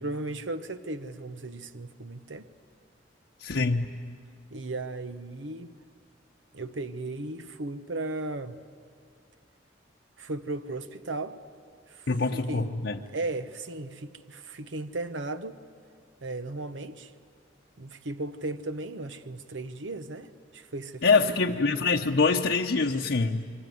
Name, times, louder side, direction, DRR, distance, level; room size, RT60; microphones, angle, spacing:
voice 1, 0.0-2.5 4.5-5.8 6.5-8.6 10.2-11.4 11.9-12.8 13.1-15.6 16.2-17.1 17.8-21.5, right 2 dB, 75° right, 10 dB, 0.9 m, -36 dB
voice 2, 3.4-3.9 12.1-13.0 21.0-23.5, left 4 dB, 65° left, 0 dB, 0.9 m, -24 dB
26.5 x 24.0 x 9.4 m, 2.2 s
head